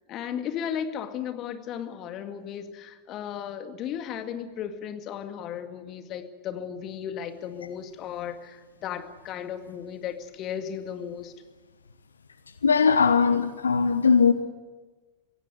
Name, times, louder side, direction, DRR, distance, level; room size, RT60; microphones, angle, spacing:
voice 1, 0.1-11.3, left 8 dB, 35° left, 2.1 m, -35 dB
voice 2, 12.6-14.3, left 5 dB, 75° left, 1.0 m, -20 dB
24.0 x 17.5 x 9.5 m
figure-of-eight pair, 90°, 0 cm